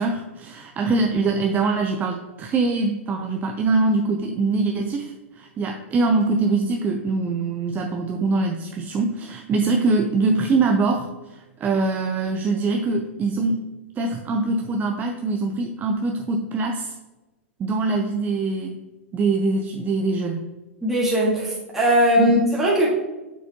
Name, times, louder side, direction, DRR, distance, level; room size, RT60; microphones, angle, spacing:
voice 1, 0.0-13.6 14.0-16.9 17.6-18.8 19.1-20.4 22.2-22.4, right 3 dB, 25° right, 3 dB, 0.6 m, -23 dB
voice 2, 20.8-22.9, equal, 5° right, -7 dB, 1.8 m, -19 dB
7.6 x 6.2 x 2.9 m, 1.1 s
hypercardioid pair, 105°, 7 cm